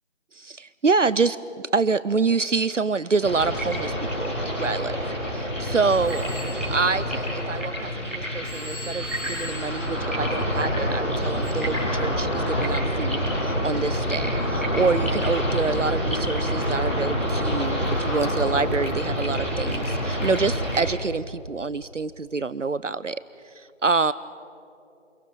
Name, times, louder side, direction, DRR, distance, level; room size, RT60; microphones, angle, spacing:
voice 1, 0.3-1.4 1.7-4.9 5.3-6.3 6.7-24.1, right 4 dB, 75° right, 17 dB, 0.7 m, -26 dB
sound 1, 3.2-20.8, equal, 10° left, 4.2 m, -27 dB
Telephone, 5.9-8.0 8.4-10.8 11.4-11.5, right 1 dB, 20° right, 6.4 m, -41 dB
29.0 x 26.5 x 5.6 m, 2.9 s
figure-of-eight pair, 175°, 37 cm